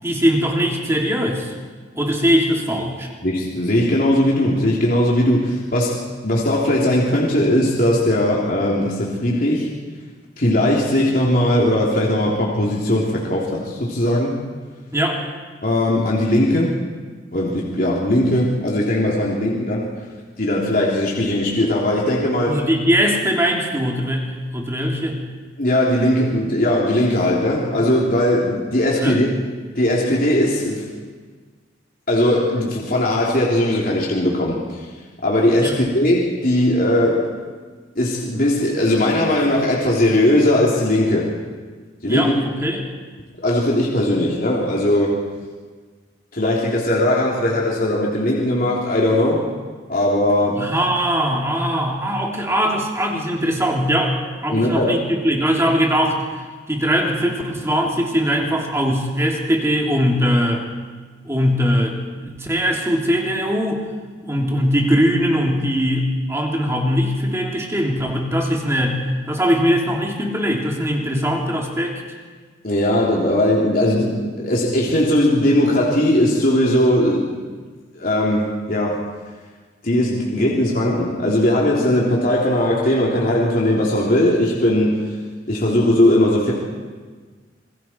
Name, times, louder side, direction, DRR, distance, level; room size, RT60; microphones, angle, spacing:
voice 1, 0.0-1.5 1.9-3.1 14.9-15.3 22.4-25.2 29.0-29.2 35.6-35.8 42.1-42.9 50.6-54.1 54.4-60.6 61.2-63.9 64.2-72.2, equal, 15° right, 0 dB, 2.9 m, -21 dB
voice 2, 3.2-9.7 10.4-14.4 15.6-16.8 17.3-19.9 20.4-22.6 25.6-29.3 29.6-30.9 32.1-34.8 35.2-37.3 38.0-41.4 42.0-42.3 43.4-45.2 46.3-49.5 49.9-50.6 54.5-54.9 72.6-77.4 77.9-79.1 79.8-85.2 85.5-86.5, left 1 dB, 50° left, -4 dB, 3.4 m, -19 dB
27.5 x 22.0 x 4.6 m, 1.4 s
head